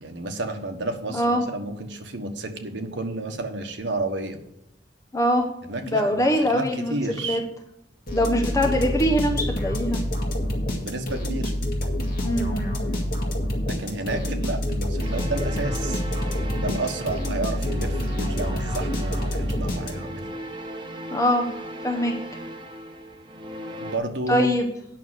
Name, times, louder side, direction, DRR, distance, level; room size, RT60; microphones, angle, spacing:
voice 1, 0.0-4.4 5.6-7.4 10.8-11.5 13.6-16.0 16.5-20.3 23.8-24.5, right 2 dB, 75° right, 5 dB, 1.4 m, -31 dB
voice 2, 1.1-1.4 5.1-5.4 5.8-6.9 7.2-7.4 8.1-10.0 12.2-12.9 21.1-21.5 21.8-22.1 24.3-24.7, equal, 15° left, 3 dB, 0.9 m, -23 dB
sound 1, 8.1-20.3, equal, 50° left, 1.9 m, -27 dB
sound 2, 15.0-24.0, right 1 dB, 25° right, 1.1 m, -37 dB
9.1 x 6.2 x 7.5 m, 0.82 s
head